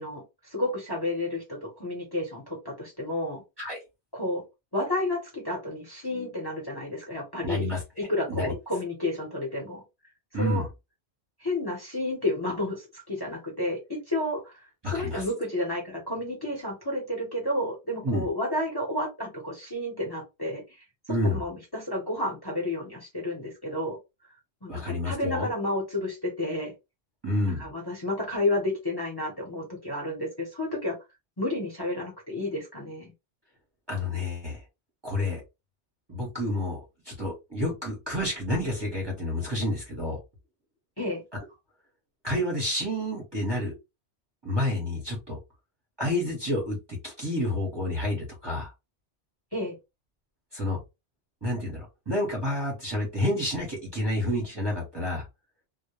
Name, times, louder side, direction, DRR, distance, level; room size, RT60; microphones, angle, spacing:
voice 1, 0.0-3.4 4.1-4.4 4.7-7.7 8.1-9.8 10.3-10.6 11.4-20.6 21.3-24.0 24.6-26.7 27.6-31.0 31.4-33.1 41.0-41.2 49.5-49.7, left 1 dB, 25° left, -1 dB, 0.9 m, -31 dB
voice 2, 7.4-7.8 8.3-8.5 10.3-10.6 14.8-15.2 18.0-18.3 21.1-21.4 24.7-25.5 27.2-27.6 33.9-34.6 35.0-35.4 36.1-40.2 42.2-43.7 44.4-45.4 46.0-46.8 47.0-48.7 50.5-50.8 51.4-55.2, left 1 dB, 25° right, -2 dB, 0.9 m, -29 dB
2.2 x 2.1 x 3.0 m, 0.24 s
omnidirectional pair, 1.1 m